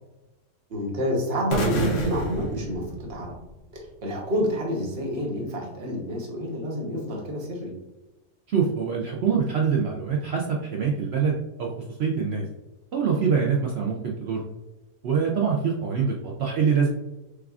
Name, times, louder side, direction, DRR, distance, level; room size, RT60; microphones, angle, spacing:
voice 1, 0.7-3.3 3.7-7.7, equal, 45° right, -1 dB, 1.2 m, -28 dB
sound 1, 1.5-3.6, right 2 dB, 55° left, 0.9 m, -29 dB
voice 2, 8.5-11.7 12.0-12.5 12.9-14.4 15.0-16.9, right 6 dB, 70° right, -2 dB, 0.6 m, -24 dB
6.5 x 2.4 x 2.4 m, 1.0 s
omnidirectional pair, 1.6 m